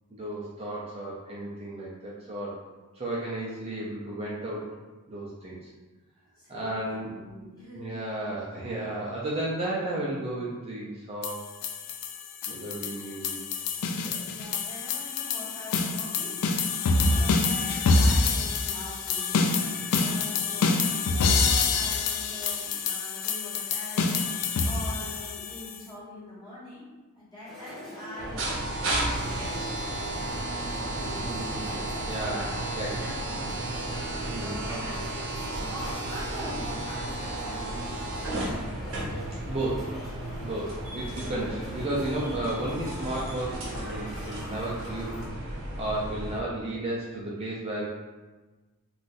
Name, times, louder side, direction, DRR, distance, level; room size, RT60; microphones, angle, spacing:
voice 1, 0.1-2.6 2.9-4.7 5.1-5.7 6.5-7.1 7.7-11.4 12.5-13.6 14.0-14.2 31.3-31.8 32.1-32.5 32.8-33.0 34.3-34.6 39.5-40.0 40.4-45.2 45.4-47.9, right 1 dB, 25° right, -5 dB, 0.4 m, -33 dB
voice 2, 6.4-8.0 14.3-16.7 17.1-26.8 27.1-29.7 30.3-31.8 32.2-32.6 33.0-33.5 34.4-35.0 35.5-37.0 37.3-37.9, left 1 dB, 20° left, -10 dB, 1.2 m, -43 dB
sound 1, 11.2-25.8, left 4 dB, 80° left, 0.3 m, -26 dB
sound 2, 27.5-45.3, equal, ahead, 0.8 m, -42 dB
sound 3, 28.2-46.4, right 1 dB, 60° right, 0.8 m, -33 dB
2.5 x 2.3 x 3.8 m, 1.2 s
head